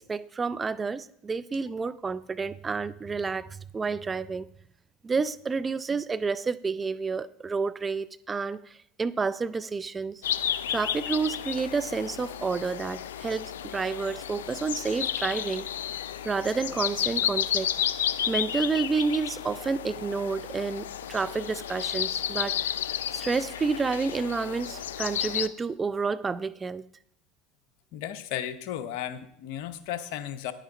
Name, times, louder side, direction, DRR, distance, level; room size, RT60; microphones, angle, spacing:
voice 1, 0.0-3.5 3.7-4.5 5.0-8.6 9.0-10.2 10.7-15.7 16.2-17.7 18.3-22.6 23.1-26.9, right 4 dB, 20° right, 0.4 m, -29 dB
sound 1, 10.2-25.5, left 10 dB, 80° left, 0.4 m, -32 dB
voice 2, 27.9-30.5, left 11 dB, 65° left, 0.8 m, -34 dB
10.0 x 9.1 x 4.0 m
hypercardioid pair, 80°, 0 cm